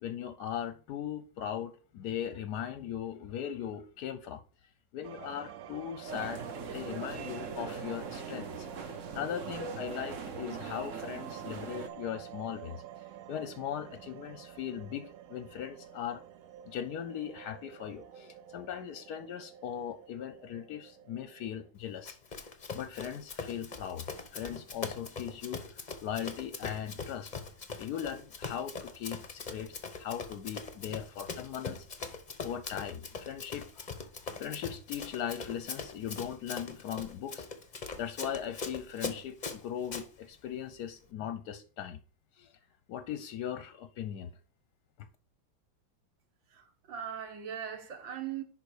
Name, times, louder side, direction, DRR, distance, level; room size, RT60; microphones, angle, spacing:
voice 1, 0.0-4.4 4.9-6.5 6.7-12.8 13.3-16.2 16.6-22.2 22.7-24.0 24.3-27.3 27.8-31.9 32.4-34.1 34.4-37.5 38.0-42.0 42.3-42.5 42.9-44.3, left 9 dB, 65° left, 1.1 m, -39 dB
sound 1, 5.0-21.7, right 11 dB, 90° right, 0.7 m, -49 dB
sound 2, 6.1-11.9, right 5 dB, 50° right, 1.1 m, -41 dB
Run, 22.1-40.1, left 4 dB, 35° left, 0.7 m, -41 dB
voice 2, 46.5-48.4, right 9 dB, 75° right, 2.0 m, -40 dB
10.5 x 3.9 x 4.8 m
omnidirectional pair, 2.1 m